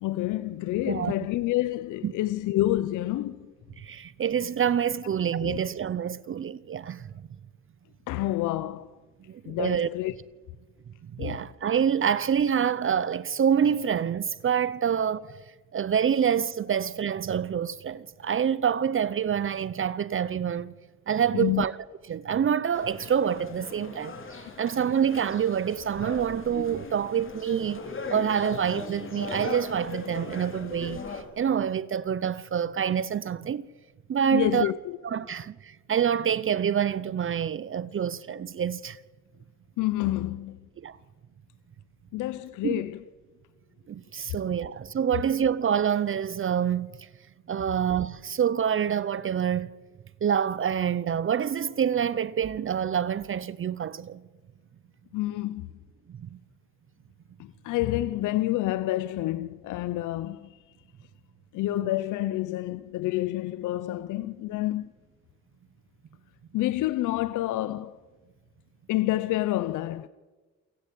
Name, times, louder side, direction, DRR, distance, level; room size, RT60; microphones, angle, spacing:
voice 1, 0.0-3.5 5.4-5.6 8.1-8.9 9.5-10.1 11.2-11.4 21.3-21.6 34.3-35.0 39.8-40.6 42.1-43.0 55.1-55.7 57.4-60.6 61.5-64.9 66.5-68.0 68.9-70.1, left 15 dB, 90° left, 0.7 m, -28 dB
voice 2, 3.8-7.3 9.3-9.9 11.0-15.4 15.7-20.7 21.1-21.7 22.1-24.2 24.6-27.8 28.1-33.6 34.1-34.7 35.0-39.0 40.8-41.0 42.6-42.7 43.9-47.1 47.5-49.7 50.2-54.2 56.1-56.4, right 8 dB, 45° right, 0.8 m, -27 dB
sound 1, 22.7-31.2, left 4 dB, 40° left, 4.0 m, -39 dB
28.5 x 16.0 x 8.4 m
cardioid pair, 90°, 30 cm